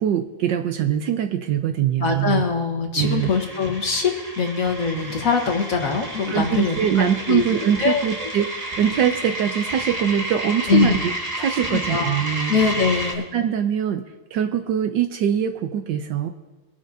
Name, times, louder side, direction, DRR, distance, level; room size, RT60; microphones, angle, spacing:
voice 1, 0.0-2.4 3.0-3.3 6.3-11.1 11.4-12.5 13.3-14.0 14.3-16.3, right 9 dB, 70° right, 7 dB, 1.2 m, -23 dB
voice 2, 2.0-8.3 10.7-11.1 11.6-12.2 12.5-13.2, left 5 dB, 45° left, 2 dB, 1.6 m, -23 dB
sound 1, 3.0-13.1, right 1 dB, 20° right, 1.4 m, -31 dB
23.0 x 10.0 x 2.7 m, 1.2 s
omnidirectional pair, 2.2 m